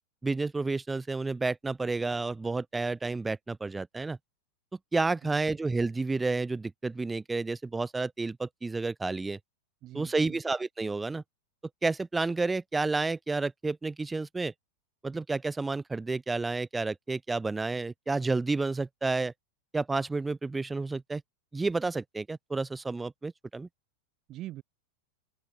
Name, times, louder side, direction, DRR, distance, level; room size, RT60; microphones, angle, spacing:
voice 1, 0.2-4.2 4.9-9.4 9.9-11.2 11.8-14.5 15.0-19.3 19.7-21.2 21.5-23.7, right 3 dB, 10° right, 3.8 m, -30 dB
voice 2, 5.2-5.6 9.8-10.4 24.3-24.6, right 15 dB, 35° right, 7.3 m, -43 dB
open air
figure-of-eight pair, 90°, 0 cm